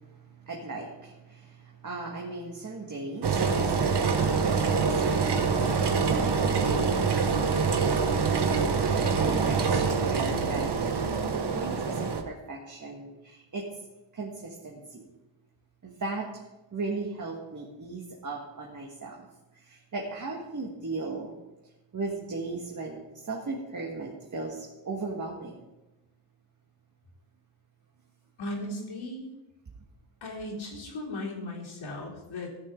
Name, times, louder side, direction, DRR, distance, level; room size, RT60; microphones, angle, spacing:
voice 1, 0.0-7.9 8.9-10.7 11.3-13.7 14.1-15.1 15.8-16.3 16.7-19.3 19.5-21.3 21.9-25.7, right 3 dB, 40° right, -1 dB, 1.8 m, -37 dB
Engine, 3.2-12.2, right 5 dB, 55° right, 1.3 m, -25 dB
voice 2, 28.4-29.3 30.2-32.5, left 1 dB, 75° left, -3 dB, 3.6 m, -37 dB
14.5 x 9.4 x 3.9 m, 0.99 s
wide cardioid pair, 110°, 48 cm